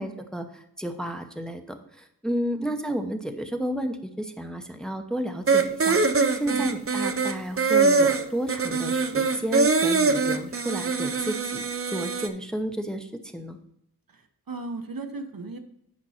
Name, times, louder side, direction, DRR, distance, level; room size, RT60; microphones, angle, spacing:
voice 1, 0.0-6.0 6.4-13.6, equal, ahead, 5 dB, 0.8 m, -32 dB
sound 1, 5.5-12.3, right 4 dB, 35° right, 0.6 m, -23 dB
voice 2, 6.5-6.8 14.5-15.6, right 3 dB, 65° right, 6 dB, 1.0 m, -36 dB
8.7 x 5.2 x 4.3 m, 0.76 s
wide cardioid pair, 55°, 37 cm